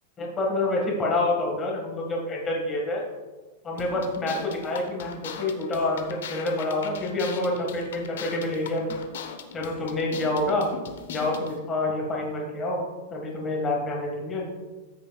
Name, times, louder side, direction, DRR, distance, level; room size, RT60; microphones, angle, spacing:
voice 1, 0.2-3.0 3.6-8.9 9.5-10.7 11.1-12.8 13.1-14.5, left 2 dB, 20° left, -1 dB, 1.7 m, -27 dB
sound 1, 3.8-11.6, left 7 dB, 85° left, 0.8 m, -40 dB
13.0 x 6.7 x 2.3 m, 1.2 s
supercardioid pair, 160°, 0 cm